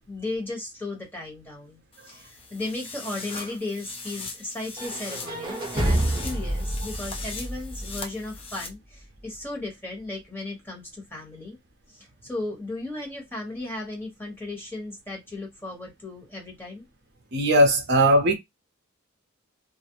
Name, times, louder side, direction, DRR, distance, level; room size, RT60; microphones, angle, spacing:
voice 1, 0.1-11.6 11.9-16.9, left 2 dB, 10° left, 1.1 m, -35 dB
sound 1, 1.9-8.7, left 4 dB, 25° left, 0.6 m, -40 dB
sound 2, 4.8-8.7, right 1 dB, 20° right, 0.8 m, -29 dB
voice 2, 17.3-18.3, right 1 dB, 55° right, 0.6 m, -19 dB
2.4 x 2.0 x 2.8 m
head